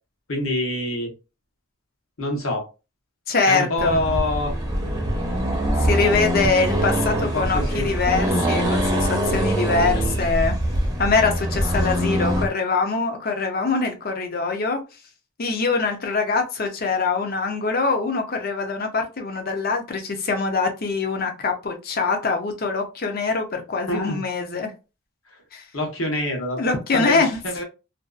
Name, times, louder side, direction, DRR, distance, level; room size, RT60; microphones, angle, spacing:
voice 1, 0.3-1.1 2.2-2.7 3.5-4.5 7.1-7.9 23.9-24.2 25.7-27.6, left 1 dB, 75° left, 1 dB, 1.0 m, -26 dB
voice 2, 3.3-4.0 5.8-10.6 11.0-14.8 15.4-24.7 25.5-25.6 26.6-27.4, left 4 dB, 45° left, 4 dB, 0.5 m, -23 dB
Accelerating revving vroom, 3.8-12.5, right 1 dB, 15° right, 0.6 m, -23 dB
2.6 x 2.3 x 2.3 m, 0.29 s
head